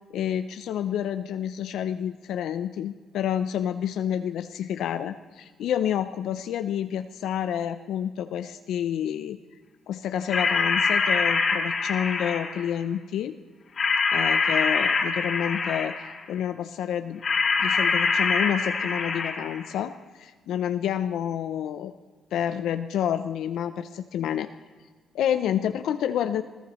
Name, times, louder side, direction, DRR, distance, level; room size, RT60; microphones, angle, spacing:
voice 1, 0.1-9.4 9.9-13.3 14.1-16.0 16.3-17.2 17.6-21.9 22.3-24.5 25.1-26.4, left 9 dB, 80° left, 10 dB, 0.5 m, -29 dB
sound 1, 10.3-12.7 13.8-16.2 17.2-19.7, left 4 dB, 50° left, 1.8 m, -24 dB
20.5 x 16.0 x 3.1 m, 1.5 s
cardioid pair, 80°, 0 cm